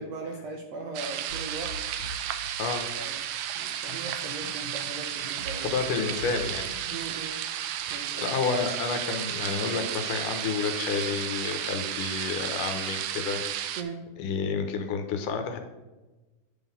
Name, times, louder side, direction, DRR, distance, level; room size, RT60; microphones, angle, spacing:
voice 1, 0.0-1.8 3.0-3.2 3.5-5.8 6.9-7.4 7.9-8.2 13.8-14.0, right 3 dB, 70° right, 2 dB, 1.7 m, -39 dB
sound 1, 0.9-13.8, right 10 dB, 85° right, 2.1 m, -33 dB
sound 2, 1.3-3.1 3.9-7.0, right 1 dB, 60° left, 2.4 m, -43 dB
voice 2, 5.6-6.7 8.2-13.4 14.2-15.6, left 5 dB, 80° left, 6 dB, 2.4 m, -30 dB
8.3 x 3.9 x 6.9 m, 1.1 s
omnidirectional pair, 3.7 m